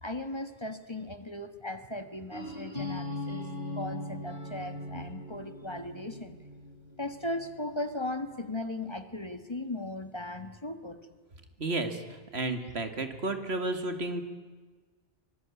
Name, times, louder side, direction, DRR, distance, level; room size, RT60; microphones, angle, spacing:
voice 1, 0.0-3.5 3.7-6.4 7.0-11.0, left 1 dB, 25° left, 9 dB, 1.6 m, -37 dB
sound 1, 2.3-8.1, left 1 dB, 55° right, 5.8 m, -40 dB
voice 2, 11.6-14.2, right 2 dB, 80° right, 8 dB, 2.5 m, -32 dB
24.5 x 21.0 x 8.5 m, 1.3 s
omnidirectional pair, 1.1 m